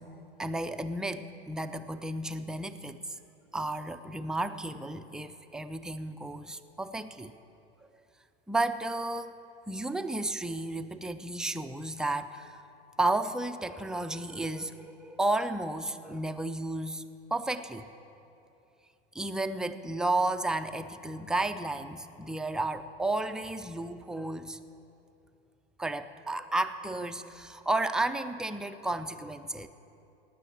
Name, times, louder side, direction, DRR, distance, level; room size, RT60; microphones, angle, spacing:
voice 1, 0.0-3.0 3.5-7.3 8.5-9.3 9.7-12.6 13.0-17.9 19.1-24.6 25.8-29.7, right 2 dB, ahead, 8 dB, 0.4 m, -32 dB
18.0 x 6.8 x 8.4 m, 2.7 s
hypercardioid pair, 90°, 30 cm